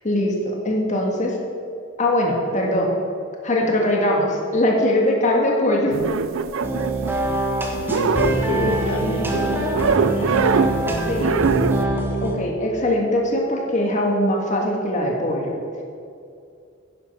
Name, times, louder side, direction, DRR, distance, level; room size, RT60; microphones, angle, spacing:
voice 1, 0.0-1.4 2.0-2.9 3.4-6.0 11.1-11.4 12.2-15.5, left 1 dB, 40° left, 0 dB, 1.8 m, -21 dB
sound 1, 5.9-7.5 7.7-9.0 9.7-10.8 11.2-11.8, right 5 dB, 75° right, 0.5 m, -23 dB
sound 2, 6.6-12.4, right 1 dB, 10° right, 1.4 m, -24 dB
voice 2, 7.9-11.0, left 1 dB, 75° left, 1 dB, 1.6 m, -27 dB
11.0 x 10.5 x 5.4 m, 2.4 s
head